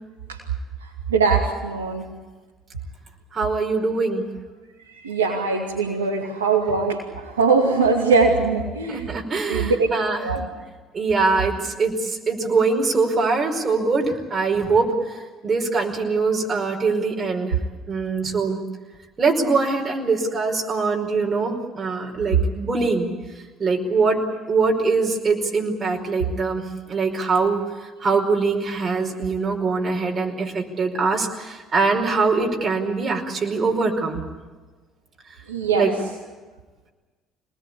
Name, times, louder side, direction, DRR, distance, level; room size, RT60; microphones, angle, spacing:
voice 1, 0.8-2.0 5.0-9.1 9.5-10.5 35.5-36.0, right 4 dB, 85° right, -2 dB, 2.5 m, -21 dB
voice 2, 3.3-4.3 8.9-10.2 10.9-17.5 17.9-18.6 19.2-23.1 23.6-24.2 24.5-26.6 26.9-34.2 35.7-35.9, right 4 dB, 35° right, 1 dB, 5.0 m, -23 dB
26.0 x 20.5 x 8.6 m, 1.3 s
hypercardioid pair, 55°, 0 cm